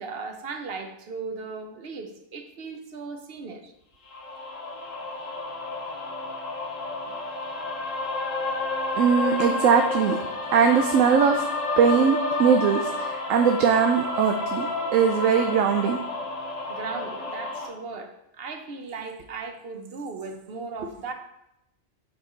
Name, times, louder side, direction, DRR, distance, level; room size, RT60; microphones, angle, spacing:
voice 1, 0.0-3.7 7.1-7.2 11.3-11.4 16.7-21.1, right 4 dB, 55° right, 6 dB, 1.0 m, -37 dB
sound 1, 4.1-17.7, left 2 dB, 80° left, 1.6 m, -30 dB
voice 2, 8.9-10.2 10.5-11.4 11.8-16.0, right 7 dB, 85° right, 5 dB, 1.0 m, -21 dB
7.9 x 4.2 x 4.4 m, 0.81 s
omnidirectional pair, 1.3 m